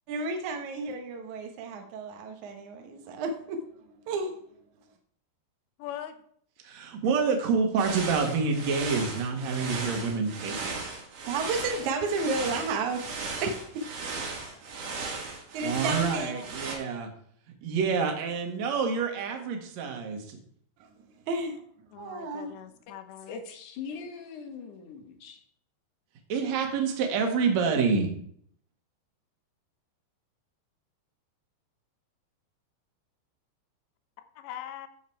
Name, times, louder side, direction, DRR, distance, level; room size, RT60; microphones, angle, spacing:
voice 1, 0.1-3.6 4.1-4.3 11.3-13.6 14.4-14.5 15.5-16.3 21.3-21.6 22.0-22.5, right 3 dB, 70° right, 1.8 m, -32 dB
voice 2, 5.8-6.1 16.0-16.5 21.9-23.4 34.4-34.9, left 11 dB, 80° left, 3.0 m, -41 dB
voice 3, 6.6-10.7 15.6-17.1 17.6-20.4 26.3-28.1, right 5 dB, 50° right, 2.3 m, -27 dB
sound 1, 7.8-16.8, right 4 dB, 90° right, 4.9 m, -36 dB
voice 4, 23.3-25.4, left 5 dB, 60° left, 2.2 m, -41 dB
13.5 x 7.2 x 4.6 m
omnidirectional pair, 5.2 m